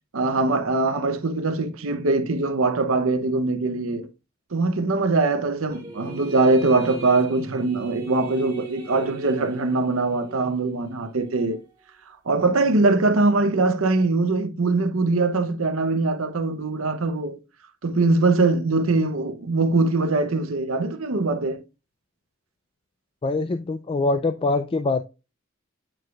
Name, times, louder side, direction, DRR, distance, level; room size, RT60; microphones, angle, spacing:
voice 1, 0.1-4.1 4.5-11.6 12.1-17.4 17.8-21.6, right 3 dB, 70° right, 0.8 m, -22 dB
sound 1, 5.7-11.6, right 3 dB, 20° right, 2.3 m, -39 dB
voice 2, 23.2-25.0, left 3 dB, 25° left, 0.3 m, -23 dB
8.9 x 4.7 x 2.4 m
head